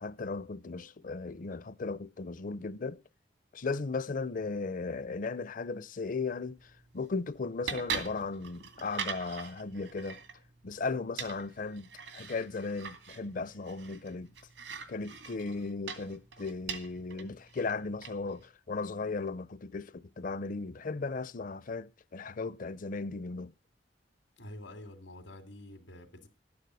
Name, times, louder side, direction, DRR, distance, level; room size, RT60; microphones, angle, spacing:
voice 1, 0.0-3.0 3.5-10.2 10.6-14.3 14.9-23.5, left 4 dB, 45° left, 0.6 m, -36 dB
sound 1, 6.5-18.5, right 6 dB, 85° right, 2.4 m, -43 dB
voice 2, 24.4-26.3, left 1 dB, 90° left, 2.4 m, -47 dB
13.0 x 9.5 x 6.2 m
head